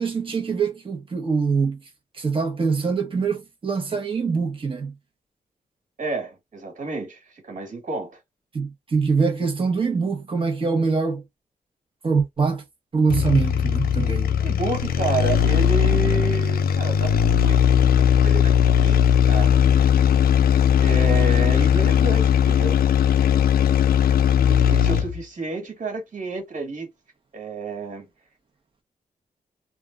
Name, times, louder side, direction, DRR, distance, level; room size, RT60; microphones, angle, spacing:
voice 1, 0.0-1.8 2.2-4.9 8.5-11.2 12.0-12.6 12.9-14.3, right 5 dB, 35° right, 1.0 m, -23 dB
voice 2, 6.0-8.2 14.4-17.6 18.0-19.0 19.3-19.6 20.8-22.8 24.4-26.9 27.3-28.1, right 3 dB, 60° right, 1.8 m, -30 dB
sound 1, 13.1-25.2, left 9 dB, 85° left, 0.4 m, -18 dB
3.3 x 2.3 x 2.3 m
wide cardioid pair, 165°, 15 cm